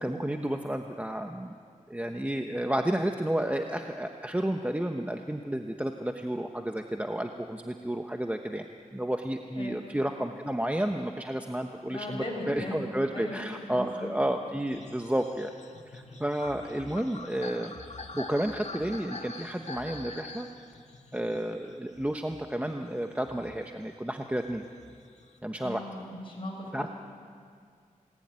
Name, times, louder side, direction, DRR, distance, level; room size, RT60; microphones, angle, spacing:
voice 1, 0.0-1.6 1.9-8.7 8.9-15.5 15.9-17.7 18.1-20.5 21.1-24.6 25.4-25.8 26.7-26.9, right 1 dB, 10° right, 4 dB, 1.1 m, -31 dB
voice 2, 9.5-9.9 11.9-13.4 13.7-14.1 25.6-26.9, left 1 dB, 40° left, -2 dB, 7.5 m, -38 dB
sound 1, 14.7-22.7 23.1-25.4, left 3 dB, 55° left, 2.2 m, -45 dB
27.5 x 19.5 x 9.7 m, 2.2 s
wide cardioid pair, 115°, 14 cm